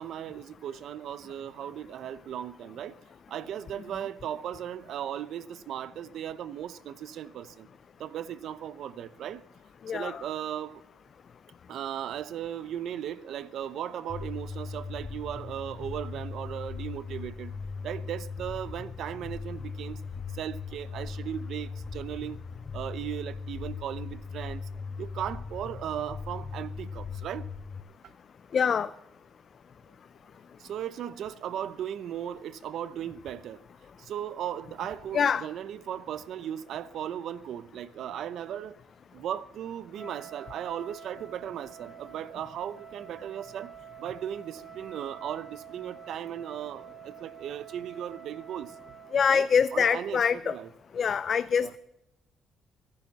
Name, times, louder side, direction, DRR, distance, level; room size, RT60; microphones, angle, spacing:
voice 1, 0.0-3.0 3.3-7.7 8.0-9.4 9.9-10.8 11.7-17.5 17.8-20.0 20.3-22.4 22.7-24.7 25.0-27.5 30.6-33.6 34.0-38.8 39.1-43.7 44.0-48.8 49.3-49.4 49.7-50.7 51.6-51.7, right 10 dB, 75° right, 0.8 m, -37 dB
voice 2, 9.9-10.2 28.5-28.9 35.1-35.4 49.1-50.6 50.9-51.8, left 7 dB, 50° left, 0.4 m, -25 dB
sound 1, 14.1-27.8, left 5 dB, 35° left, 0.9 m, -39 dB
Wind instrument woodwind instrument, 39.9-49.3, right 8 dB, 20° right, 4.0 m, -48 dB
24.0 x 10.5 x 4.2 m
cardioid pair, 85°, 0 cm